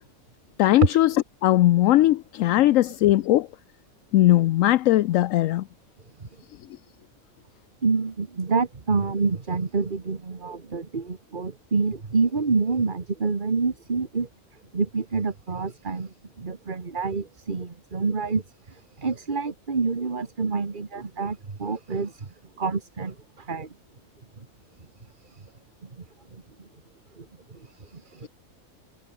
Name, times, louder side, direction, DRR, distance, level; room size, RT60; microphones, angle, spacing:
voice 1, 0.6-1.2 1.4-3.5 4.1-5.6, left 14 dB, 75° left, 0.9 m, -19 dB
voice 2, 7.8-14.3 14.7-23.7 24.4-24.5 25.2-25.5 25.8-25.9 26.3-26.7 27.2-28.3, right 4 dB, 35° right, 1.7 m, -28 dB
omnidirectional pair, 1.4 m